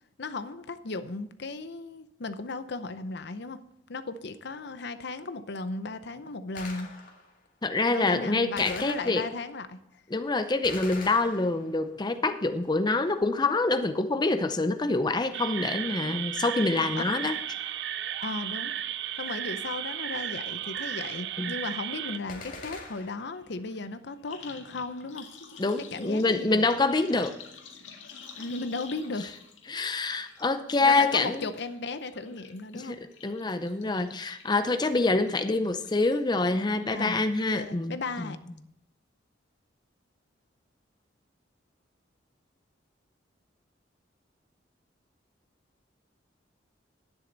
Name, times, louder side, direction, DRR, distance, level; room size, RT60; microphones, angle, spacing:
voice 1, 0.2-3.6 3.9-6.9 7.9-9.8 17.0-17.1 18.2-18.7 19.2-25.3 25.9-26.7 28.3-29.2 30.8-33.0 36.9-37.2 37.5-38.4, left 3 dB, 60° left, 12 dB, 0.7 m, -36 dB
Gunshot gunfire, 6.6-7.4 8.6-9.5 10.6-11.9 22.3-23.4, left 3 dB, 45° left, 2.0 m, -43 dB
voice 2, 7.6-9.2 10.1-17.3 21.4-21.5 25.6-27.4 29.7-31.5 32.7-38.4, left 3 dB, 20° left, 9 dB, 0.6 m, -26 dB
sound 1, 15.3-22.2, right 10 dB, 60° right, 0.5 m, -34 dB
sound 2, 21.4-21.5 21.8-36.4 36.8-37.3 37.5-37.6, left 6 dB, 85° left, 1.9 m, -50 dB
11.5 x 9.9 x 4.0 m, 0.82 s
head